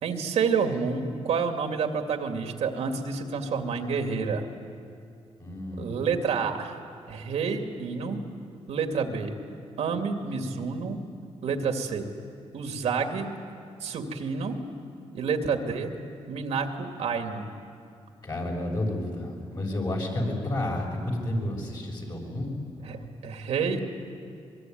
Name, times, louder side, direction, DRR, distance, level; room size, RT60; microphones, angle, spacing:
voice 1, 0.0-4.5 5.8-6.8 7.1-8.2 8.7-9.3 9.8-11.0 11.4-12.1 12.5-13.3 13.8-14.6 15.1-15.9 16.3-17.5 22.8-23.8, right 5 dB, 90° right, 5 dB, 2.3 m, -29 dB
voice 2, 5.4-6.0 18.2-22.5, left 1 dB, 40° left, 0 dB, 6.3 m, -31 dB
24.0 x 23.0 x 9.3 m, 2.4 s
cardioid pair, 110°, 11 cm